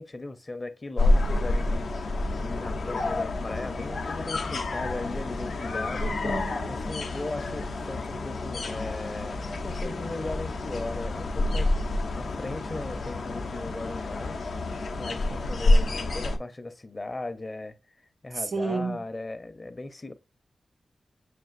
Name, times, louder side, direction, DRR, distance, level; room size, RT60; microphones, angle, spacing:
voice 1, 0.0-1.9 2.4-6.1 6.7-11.7 12.2-14.4 15.0-17.8 18.2-20.1, left 2 dB, 35° left, 0.6 m, -37 dB
sound 1, 1.0-16.4, left 2 dB, 80° left, 0.5 m, -28 dB
voice 2, 6.0-6.8 18.5-19.0, right 3 dB, 65° right, 0.6 m, -31 dB
6.5 x 2.5 x 2.5 m
cardioid pair, 60°, 0 cm